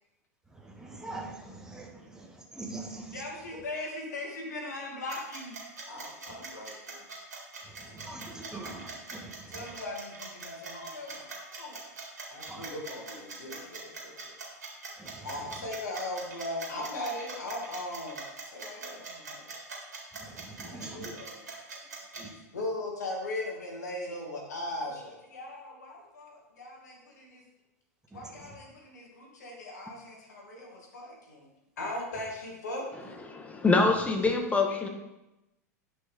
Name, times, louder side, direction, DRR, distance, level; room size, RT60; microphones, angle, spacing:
voice 1, 0.5-3.6 7.6-9.8 12.5-12.7 14.9-15.7 20.1-21.1 22.2-22.3 28.1-28.6 34.0-34.3, right 2 dB, 5° right, 0 dB, 1.5 m, -44 dB
voice 2, 3.1-5.6 5.9-7.0 9.5-11.9 12.3-14.2 15.2-19.4 20.6-21.4 22.1-27.4 28.1-31.5 31.8-33.2 34.7-34.8, left 2 dB, 80° left, -1 dB, 2.2 m, -39 dB
sound 1, 5.1-22.2, right 4 dB, 80° right, 2.4 m, -42 dB
voice 3, 33.3-34.9, left 3 dB, 15° left, 4 dB, 1.2 m, -25 dB
9.4 x 5.5 x 3.6 m, 0.96 s
hypercardioid pair, 95°, 9 cm